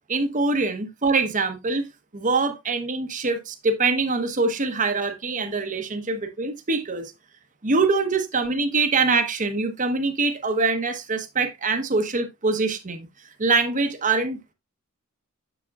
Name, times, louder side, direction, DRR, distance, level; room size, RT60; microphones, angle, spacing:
voice 1, 0.1-7.1 7.6-13.1 13.4-14.5, right 3 dB, 35° right, 0.9 m, -24 dB
7.3 x 7.0 x 2.3 m
head